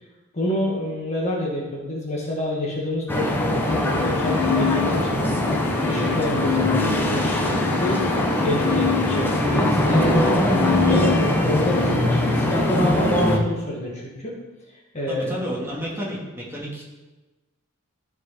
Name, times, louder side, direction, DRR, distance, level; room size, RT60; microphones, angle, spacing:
voice 1, 0.3-5.4 5.8-10.4 10.8-11.2 11.4-14.3 14.9-15.3, left 1 dB, 30° left, -3 dB, 1.8 m, -27 dB
sound 1, 3.1-13.4, left 1 dB, 10° left, 0.9 m, -22 dB
sound 2, 3.7-12.0, left 7 dB, 85° left, 0.9 m, -27 dB
voice 2, 15.1-16.8, equal, 10° right, -5 dB, 2.1 m, -31 dB
14.0 x 4.7 x 4.4 m, 1.2 s
head